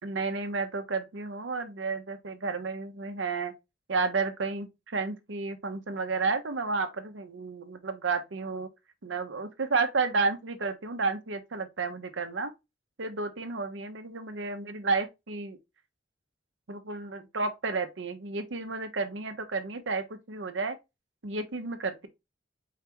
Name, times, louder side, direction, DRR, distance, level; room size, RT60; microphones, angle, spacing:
voice 1, 0.0-3.5 3.9-8.7 9.0-12.5 13.0-15.6 16.7-20.8 21.2-22.1, right 4 dB, 85° right, 0.9 m, -31 dB
4.7 x 3.4 x 3.0 m
head